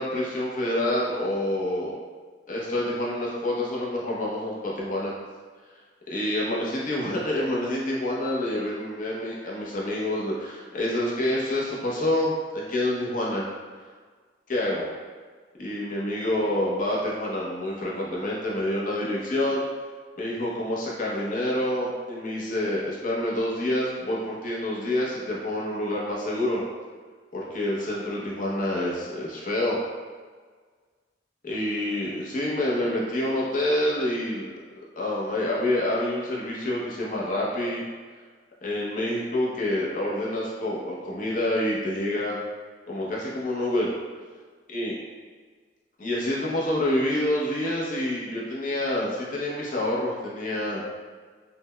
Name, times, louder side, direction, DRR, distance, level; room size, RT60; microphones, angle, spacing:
voice 1, 0.0-1.9 2.5-5.1 6.1-13.5 14.5-14.9 15.6-19.6 20.2-26.6 27.3-29.8 31.4-34.5 35.0-37.8 38.6-42.4 42.9-43.9 44.7-44.9 46.0-50.8, left 1 dB, 50° left, -5 dB, 0.7 m, -27 dB
5.6 x 2.1 x 2.2 m, 1.5 s
head